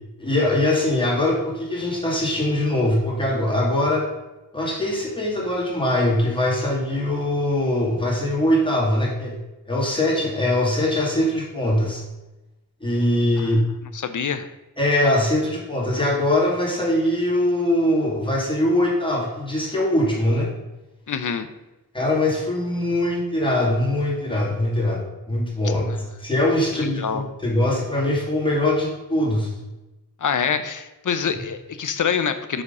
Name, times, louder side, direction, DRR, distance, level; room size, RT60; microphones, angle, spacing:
voice 1, 0.2-4.1 4.5-9.4 9.7-12.0 12.8-13.6 14.8-20.5 21.9-25.0 25.3-29.5, left 1 dB, 15° left, -4 dB, 2.2 m, -22 dB
voice 2, 13.9-14.5 21.1-21.5 25.9-26.0 26.7-27.2 30.2-32.6, left 7 dB, 60° left, 10 dB, 0.7 m, -25 dB
6.3 x 4.9 x 5.4 m, 1.0 s
wide cardioid pair, 105°, 35 cm